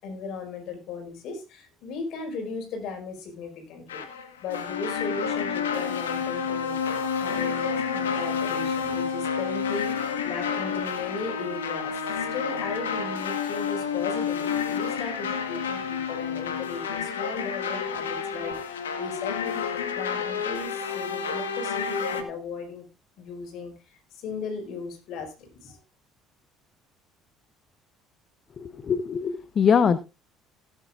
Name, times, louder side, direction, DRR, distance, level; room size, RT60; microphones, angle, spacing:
voice 1, 0.0-4.0 4.4-19.6 19.9-22.8 23.2-25.8, left 4 dB, 65° left, 5.0 m, -37 dB
sound 1, 3.9-22.2, left 6 dB, 90° left, 1.4 m, -29 dB
voice 2, 28.6-30.0, left 7 dB, 45° left, 0.8 m, -23 dB
17.5 x 10.0 x 2.5 m
hypercardioid pair, 60°, 0 cm